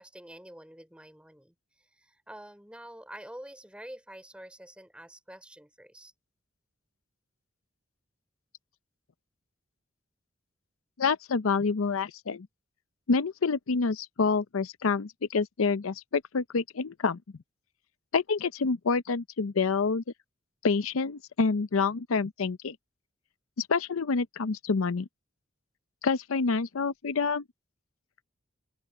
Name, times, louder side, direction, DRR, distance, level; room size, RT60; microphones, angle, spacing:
voice 1, 0.0-6.1, right 1 dB, 5° right, 4.0 m, -47 dB
voice 2, 11.0-12.5 13.1-17.2 18.1-20.0 20.6-22.8 23.6-25.1 26.0-27.4, left 4 dB, 90° left, 0.6 m, -27 dB
open air
head